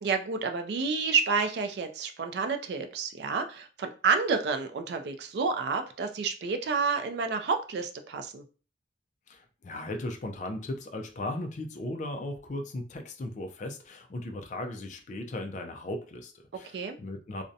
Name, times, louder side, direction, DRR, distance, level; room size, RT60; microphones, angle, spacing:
voice 1, 0.0-8.4 16.6-17.0, right 5 dB, 65° right, 6 dB, 0.3 m, -29 dB
voice 2, 9.3-17.4, left 1 dB, 40° left, 4 dB, 0.3 m, -37 dB
2.5 x 2.0 x 2.6 m, 0.37 s
head